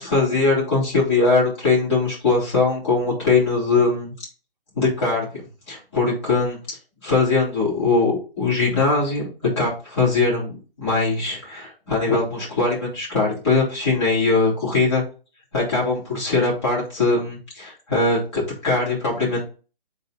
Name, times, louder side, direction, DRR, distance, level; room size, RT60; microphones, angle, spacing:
voice 1, 0.0-4.1 4.8-5.3 5.7-6.6 7.0-9.3 9.6-15.0 15.5-19.4, left 3 dB, 30° left, -7 dB, 3.4 m, -21 dB
5.4 x 3.9 x 5.1 m, 0.34 s
hypercardioid pair, 175°, 30 cm